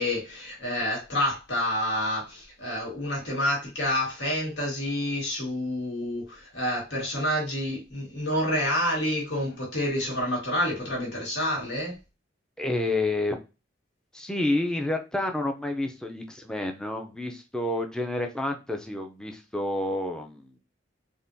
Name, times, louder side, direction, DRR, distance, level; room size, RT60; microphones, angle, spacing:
voice 1, 0.0-11.9, left 1 dB, 85° left, 1.5 m, -28 dB
voice 2, 12.6-13.4 14.1-20.5, left 2 dB, 5° left, 0.4 m, -29 dB
3.6 x 2.5 x 2.6 m
head